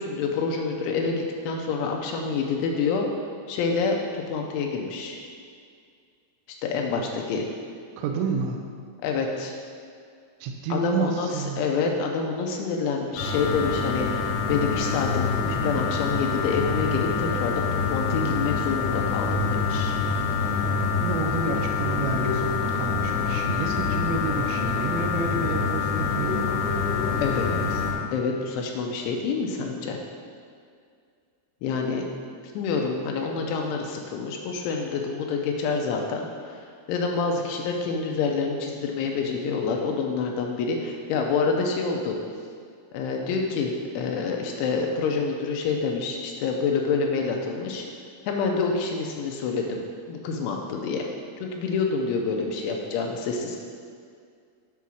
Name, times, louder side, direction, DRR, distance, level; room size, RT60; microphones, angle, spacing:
voice 1, 0.0-3.1 3.5-5.2 6.6-7.5 9.0-9.5 10.7-19.9 27.2-27.8 28.1-30.0 31.6-32.0 32.5-42.2 42.9-47.9 48.3-49.8 50.1-51.1 51.4-53.6, left 4 dB, 80° left, 1 dB, 2.9 m, -27 dB
voice 2, 8.0-8.6 10.4-11.7 21.0-26.5, right 4 dB, 90° right, 1 dB, 2.5 m, -30 dB
sound 1, 13.2-27.9, left 5 dB, 60° left, 4.0 m, -26 dB
8.4 x 4.7 x 6.1 m, 2.2 s
omnidirectional pair, 5.8 m